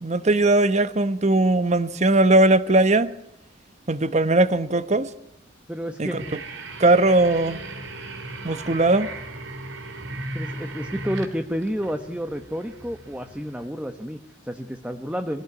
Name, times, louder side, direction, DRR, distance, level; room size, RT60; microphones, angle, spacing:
voice 1, 0.0-3.1 3.9-5.1 6.0-6.1 6.8-7.6 8.4-9.1, right 2 dB, 35° right, 1.0 m, -19 dB
voice 2, 5.7-6.3 10.3-15.4, equal, 5° right, 1.0 m, -30 dB
sound 1, 6.2-13.7, right 2 dB, 75° right, 3.4 m, -37 dB
23.0 x 17.0 x 9.5 m
head